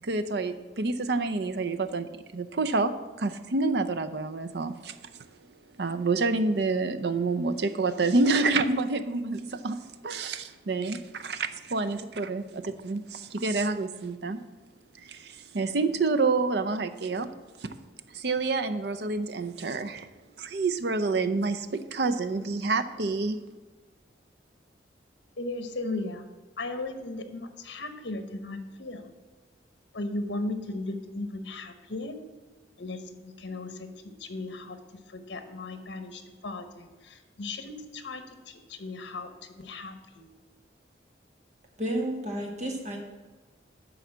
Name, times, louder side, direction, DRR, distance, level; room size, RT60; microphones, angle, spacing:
voice 1, 0.0-5.0 5.8-9.8 10.0-14.4 15.0-17.3 17.6-17.7 18.1-20.1 20.4-23.4, right 3 dB, 65° right, 10 dB, 0.6 m, -28 dB
voice 2, 25.4-26.2 26.6-29.1 29.9-32.2 32.8-33.9 34.2-34.8 35.1-38.2 38.5-40.3, left 2 dB, 80° left, 8 dB, 1.0 m, -36 dB
voice 3, 41.8-43.0, right 1 dB, 40° right, 1 dB, 1.7 m, -31 dB
10.0 x 4.0 x 7.3 m, 1.3 s
head